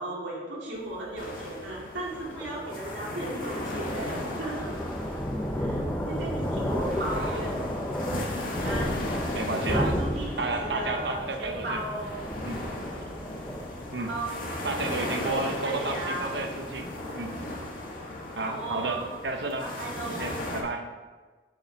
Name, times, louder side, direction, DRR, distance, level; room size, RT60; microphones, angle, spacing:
voice 1, 0.0-4.7 5.6-7.7 8.6-8.9 9.6-12.2 12.8-13.2 13.7-14.4 14.7-16.4 18.4-19.1 19.6-20.4, right 2 dB, 90° right, -5 dB, 2.4 m, -36 dB
Thunder, 0.8-17.7, equal, 10° left, 0.6 m, -34 dB
sound 1, 1.2-20.6, left 1 dB, 50° left, 1.5 m, -37 dB
voice 2, 9.3-9.9 10.4-11.8 12.4-12.6 13.9-14.1 14.6-17.3 18.4-19.7 20.2-20.9, right 3 dB, 70° right, 4 dB, 0.9 m, -32 dB
8.1 x 4.2 x 5.4 m, 1.3 s
head